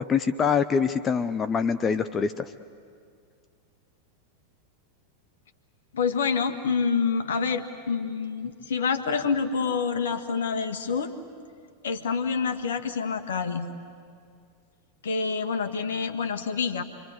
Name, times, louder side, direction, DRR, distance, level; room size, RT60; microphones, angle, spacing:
voice 1, 0.0-2.5, left 6 dB, 25° left, 15 dB, 0.6 m, -25 dB
voice 2, 5.9-11.1 11.8-13.7 15.0-16.8, left 5 dB, 65° left, 9 dB, 1.6 m, -27 dB
27.0 x 24.0 x 8.3 m, 2.3 s
figure-of-eight pair, 90°, 0 cm